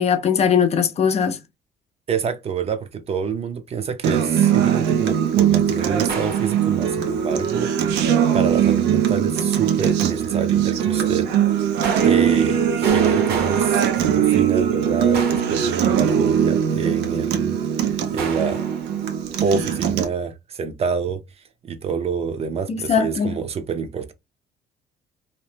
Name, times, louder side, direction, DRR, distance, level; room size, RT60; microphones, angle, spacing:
voice 1, 0.0-1.4 22.7-23.3, left 7 dB, 40° left, 0.4 m, -20 dB
voice 2, 2.1-11.3 12.0-18.7 19.4-21.2 21.6-24.1, right 6 dB, 35° right, 0.5 m, -27 dB
Acoustic guitar, 4.0-20.0, right 9 dB, 85° right, 0.6 m, -20 dB
sound 1, 6.1-7.2 11.8-14.7 15.1-16.5 18.2-19.1, right 4 dB, 70° right, 1.0 m, -32 dB
2.8 x 2.1 x 3.2 m
cardioid pair, 110°, 17 cm